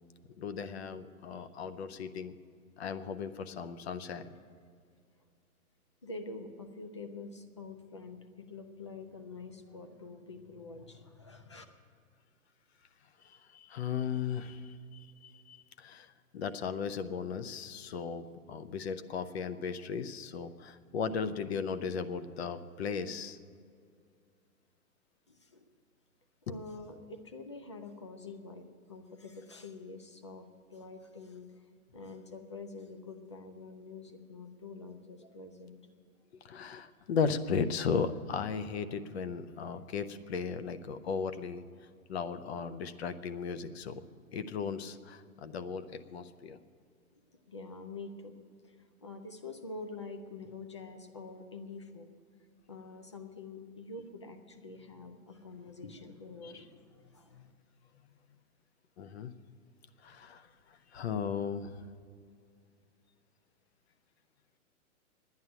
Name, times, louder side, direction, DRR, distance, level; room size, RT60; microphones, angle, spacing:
voice 1, 0.4-2.4 2.8-4.3 13.2-16.1 16.3-23.4 36.4-41.6 42.1-44.0 44.3-46.6 56.4-56.5 59.0-59.3 60.0-60.5 60.9-61.7, left 6 dB, 45° left, 12 dB, 0.7 m, -36 dB
voice 2, 6.0-11.6 25.3-25.6 26.5-31.5 31.9-35.9 47.5-48.3 48.6-48.8 49.0-52.1 52.7-57.5, left 3 dB, 20° left, 7 dB, 0.3 m, -46 dB
11.0 x 9.5 x 9.0 m, 2.2 s
hypercardioid pair, 145°, 44 cm